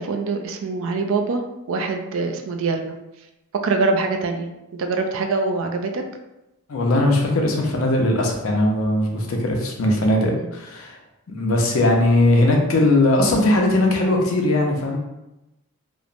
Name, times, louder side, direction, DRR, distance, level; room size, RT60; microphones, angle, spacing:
voice 1, 0.0-1.4 1.7-2.9 3.6-4.5 4.8-6.0, right 3 dB, 60° right, 5 dB, 0.3 m, -23 dB
voice 2, 6.7-11.0 11.3-15.0, left 1 dB, 70° left, 1 dB, 0.5 m, -19 dB
3.0 x 2.0 x 2.4 m, 0.94 s
head